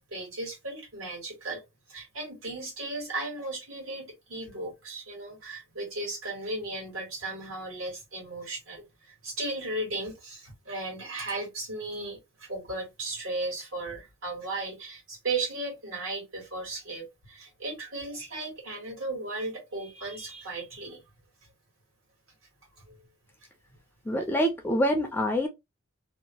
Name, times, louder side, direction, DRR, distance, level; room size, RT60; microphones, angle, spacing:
voice 1, 0.0-1.6 1.9-21.0 22.9-23.0, right 2 dB, 70° right, 1.5 m, -36 dB
voice 2, 24.1-25.5, equal, 10° left, 0.3 m, -25 dB
2.7 x 2.1 x 2.9 m
head